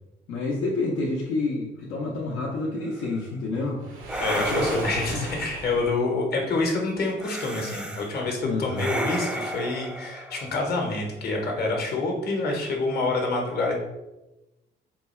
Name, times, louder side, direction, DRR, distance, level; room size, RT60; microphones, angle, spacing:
voice 1, 0.3-3.8 4.3-4.8 5.1-5.2 8.4-8.9, left 2 dB, 85° left, -3 dB, 0.7 m, -29 dB
sound 1, 2.9-3.2 4.1-5.3 7.2-8.1 8.7-11.0, right 1 dB, 5° right, 0.4 m, -33 dB
Waves surf, 3.8-5.9, right 3 dB, 90° right, 0.9 m, -36 dB
voice 2, 4.2-13.7, left 3 dB, 50° left, 0 dB, 0.9 m, -27 dB
3.9 x 2.3 x 4.2 m, 1.0 s
cardioid pair, 90°, 20 cm